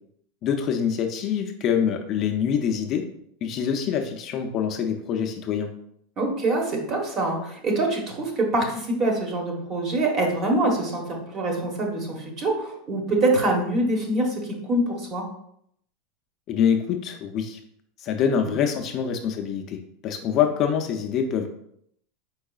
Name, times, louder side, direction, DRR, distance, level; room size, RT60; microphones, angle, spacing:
voice 1, 0.4-3.0 3.4-5.7 16.5-17.6 18.0-21.5, left 8 dB, 40° left, 3 dB, 0.5 m, -25 dB
voice 2, 6.2-15.2, right 2 dB, 35° right, 1 dB, 1.2 m, -25 dB
4.6 x 4.6 x 2.4 m, 0.71 s
supercardioid pair, 140°, 0 cm